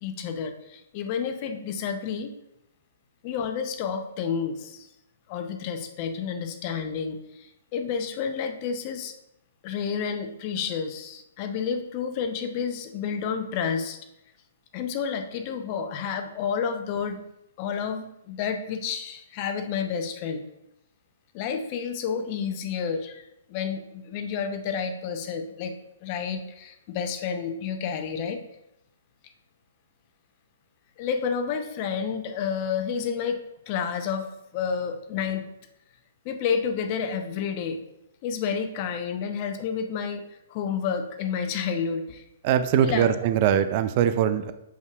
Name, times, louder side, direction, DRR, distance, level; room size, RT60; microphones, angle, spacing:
voice 1, 0.0-2.3 3.2-4.9 5.3-9.1 9.6-14.0 14.7-17.2 17.6-20.4 21.3-23.2 23.5-25.7 26.0-28.4 31.0-33.4 33.7-34.3 34.5-35.5 36.2-37.8 38.2-40.2 40.5-42.2 42.7-43.1, left 6 dB, 35° left, 7 dB, 0.7 m, -30 dB
voice 2, 42.4-44.5, right 9 dB, 40° right, 11 dB, 0.4 m, -22 dB
7.9 x 5.3 x 2.4 m, 0.85 s
figure-of-eight pair, 120°, 0 cm